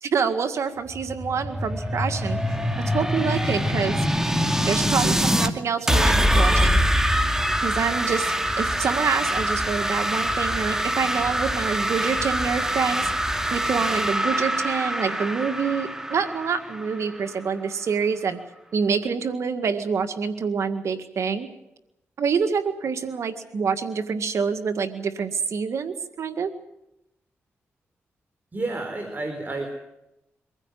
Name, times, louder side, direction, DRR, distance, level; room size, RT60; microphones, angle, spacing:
voice 1, 0.0-4.1 4.6-6.8 7.6-13.1 13.5-18.4 18.7-21.5 22.2-26.5, right 6 dB, 70° right, 9 dB, 1.9 m, -26 dB
sound 1, 0.9-5.5 5.9-17.4, equal, 10° right, 2.4 m, -24 dB
voice 2, 28.5-29.7, right 2 dB, 35° right, 5 dB, 4.4 m, -30 dB
24.5 x 15.5 x 9.4 m, 0.87 s
cardioid pair, 65°, 5 cm